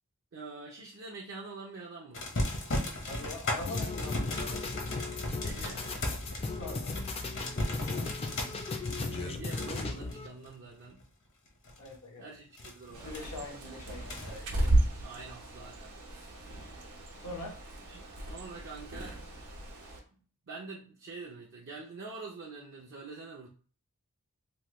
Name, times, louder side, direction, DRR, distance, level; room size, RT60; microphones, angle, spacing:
voice 1, 0.3-2.3 5.4-5.9 9.1-11.0 12.2-13.3 15.0-16.5 17.9-19.2 20.5-23.5, right 3 dB, 55° right, -2 dB, 0.5 m, -46 dB
sound 1, 2.1-11.0 11.5-12.0 12.6-13.2 13.8-14.4, left 1 dB, 60° left, 0.8 m, -36 dB
voice 2, 3.1-4.8 6.4-6.9 11.8-12.3 13.0-14.5 17.2-17.6, left 2 dB, 90° left, 1 dB, 0.8 m, -43 dB
sound 2, 3.7-10.3, left 3 dB, 25° left, 0.4 m, -36 dB
Bird, 12.9-20.0, right 1 dB, 85° right, 0.9 m, -34 dB
3.0 x 2.1 x 3.0 m, 0.41 s
head